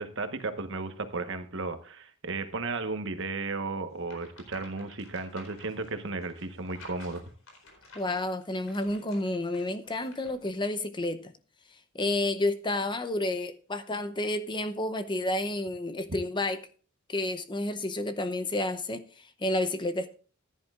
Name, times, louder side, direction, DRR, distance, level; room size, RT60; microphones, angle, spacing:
voice 1, 0.0-7.2, right 3 dB, 60° right, 1.3 m, -34 dB
sound 1, 4.0-10.5, left 2 dB, 90° left, 4.4 m, -53 dB
voice 2, 7.9-11.3 11.9-16.6 17.1-20.1, left 2 dB, 20° left, 0.7 m, -30 dB
15.0 x 10.5 x 2.5 m
head